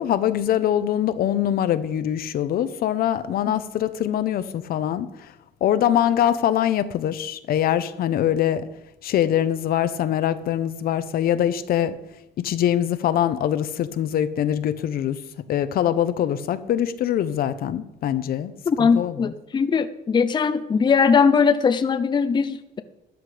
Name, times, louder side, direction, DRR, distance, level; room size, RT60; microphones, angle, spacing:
voice 1, 0.0-5.3 5.6-8.7 9.0-12.0 12.4-15.2 15.5-18.5 18.8-19.3, left 10 dB, 60° left, 12 dB, 0.8 m, -23 dB
voice 2, 18.7-22.8, left 5 dB, 25° left, 10 dB, 0.6 m, -20 dB
13.0 x 10.0 x 5.0 m, 0.90 s
cardioid pair, 110°, 17 cm